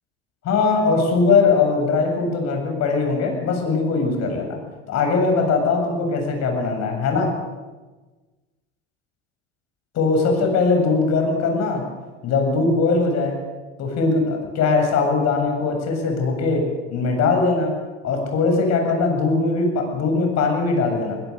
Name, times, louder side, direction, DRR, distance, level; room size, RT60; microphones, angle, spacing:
voice 1, 0.4-4.6 4.9-7.3 9.9-11.8 12.2-13.4 13.8-16.6 16.9-17.7 18.0-21.2, left 4 dB, 50° left, 3 dB, 7.5 m, -20 dB
23.5 x 21.5 x 6.7 m, 1.2 s
hypercardioid pair, 75°, 34 cm